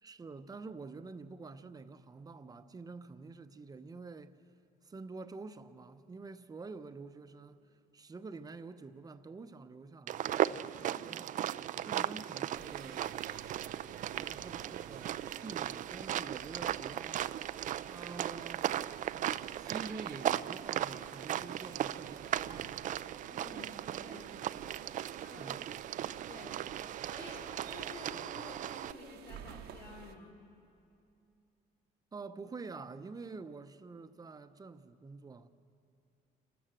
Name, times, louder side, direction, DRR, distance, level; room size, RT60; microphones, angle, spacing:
voice 1, 0.0-4.3 4.8-7.6 7.9-11.3 11.8-13.1 14.2-15.1 15.4-17.2 17.9-18.7 19.3-22.8 25.4-25.7 32.1-35.5, right 4 dB, 20° right, 0.8 m, -47 dB
sound 1, 10.1-28.9, right 11 dB, 50° right, 0.4 m, -37 dB
sound 2, 12.5-30.1, right 9 dB, 70° right, 1.0 m, -52 dB
voice 2, 14.3-14.7 23.3-24.4 25.1-25.6 26.3-26.6 27.0-30.4, left 3 dB, 70° left, 4.5 m, -51 dB
28.0 x 13.0 x 7.6 m
cardioid pair, 110°, 17 cm